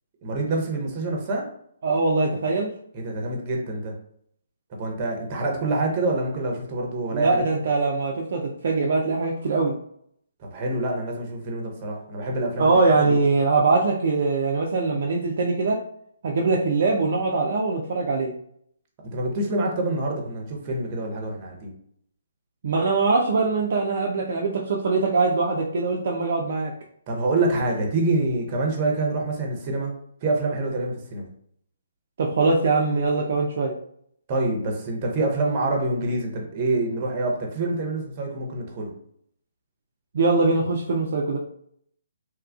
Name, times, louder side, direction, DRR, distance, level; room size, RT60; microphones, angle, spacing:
voice 1, 0.2-1.4 2.9-3.9 4.7-7.4 10.4-12.8 13.1-13.2 19.0-21.7 27.1-29.9 30.2-31.3 34.3-38.9, right 2 dB, 30° right, 0 dB, 0.7 m, -26 dB
voice 2, 1.8-2.7 7.1-9.7 12.6-15.8 16.2-18.3 22.6-26.7 32.2-33.7 40.1-41.4, right 3 dB, 55° right, -1 dB, 0.4 m, -22 dB
2.9 x 2.3 x 2.3 m, 0.67 s
figure-of-eight pair, 135°, 0 cm